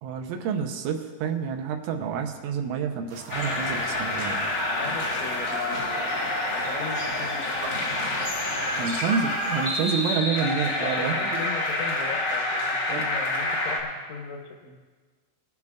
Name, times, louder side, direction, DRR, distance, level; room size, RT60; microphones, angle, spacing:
voice 1, 0.0-4.5 8.8-11.4 12.9-13.1, right 6 dB, 80° right, 4 dB, 3.0 m, -29 dB
sound 1, 3.1-10.2, right 4 dB, 60° right, 1.9 m, -43 dB
sound 2, 3.3-13.8, left 1 dB, 55° left, 1.2 m, -28 dB
voice 2, 4.8-6.2 6.5-7.7 10.8-14.8, left 5 dB, 75° left, 3 dB, 3.0 m, -38 dB
19.5 x 12.0 x 2.4 m, 1.5 s
omnidirectional pair, 5.7 m